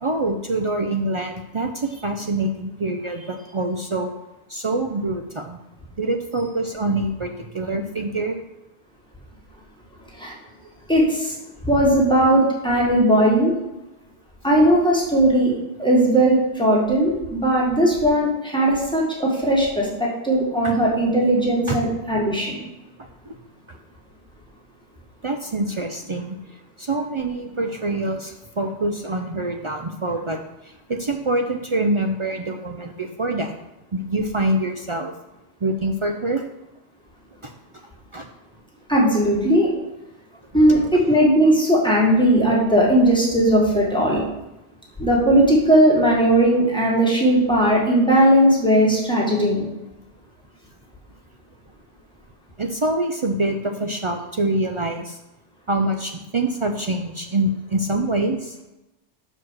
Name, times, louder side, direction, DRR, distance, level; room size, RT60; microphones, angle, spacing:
voice 1, 0.0-4.1 4.5-5.6 6.0-8.4 20.6-20.7 21.7-21.8 23.3-23.4 25.2-26.4 26.8-33.5 33.9-35.1 35.6-36.4 37.4-37.5 38.1-38.3 40.9-41.0 52.6-55.2 55.7-58.6, right 2 dB, 50° right, 4 dB, 0.3 m, -25 dB
voice 2, 10.9-11.3 11.6-13.5 14.4-15.5 15.8-22.6 38.9-39.7 40.5-44.3 45.0-49.7, right 1 dB, 5° left, -4 dB, 1.7 m, -18 dB
5.9 x 4.7 x 6.3 m, 0.95 s
omnidirectional pair, 1.2 m